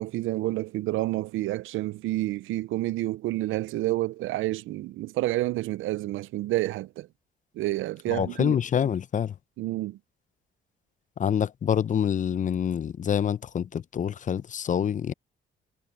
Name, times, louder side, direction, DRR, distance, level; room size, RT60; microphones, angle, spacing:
voice 1, 0.0-7.1 7.5-8.6 9.6-10.0, right 17 dB, 85° right, 0.5 m, -29 dB
voice 2, 8.1-9.3 11.2-15.1, left 8 dB, 40° left, 0.5 m, -26 dB
cardioid pair, 90°, 20 cm